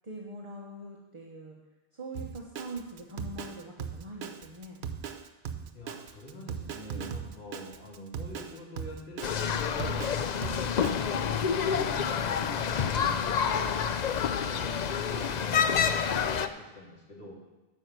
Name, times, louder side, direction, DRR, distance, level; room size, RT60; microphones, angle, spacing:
voice 1, 0.0-1.6 1.9-4.8 6.9-7.1 9.8-10.0 13.0-13.2 15.5-15.6, right 1 dB, 30° right, -1 dB, 1.2 m, -43 dB
Drum kit, 2.1-10.9, right 7 dB, 90° right, 1.0 m, -38 dB
voice 2, 5.7-10.1 10.8-13.7 14.3-15.4 15.7-17.3, equal, 80° left, -5 dB, 3.3 m, -45 dB
sound 1, 9.2-16.5, left 7 dB, 50° left, 0.6 m, -28 dB
12.0 x 5.8 x 7.6 m, 1.1 s
omnidirectional pair, 1.1 m